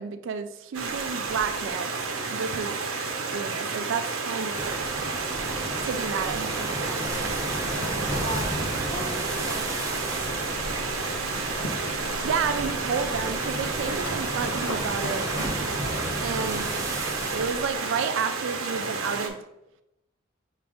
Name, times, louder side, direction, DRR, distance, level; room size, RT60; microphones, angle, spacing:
voice 1, 0.0-1.9 2.3-2.8 3.2-5.1 5.8-7.0 12.2-15.3 16.2-16.8 17.3-19.4, right 6 dB, 65° right, 9 dB, 0.3 m, -31 dB
Stream, 0.7-19.3, right 4 dB, 80° right, 0.7 m, -31 dB
sound 1, 4.5-17.5, right 1 dB, 15° right, 0.5 m, -33 dB
Livestock farm animals working animals, 7.0-17.8, left 1 dB, 80° left, 0.7 m, -40 dB
voice 2, 8.1-10.8, left 1 dB, 20° left, -2 dB, 1.0 m, -40 dB
5.9 x 2.5 x 3.5 m, 0.88 s
head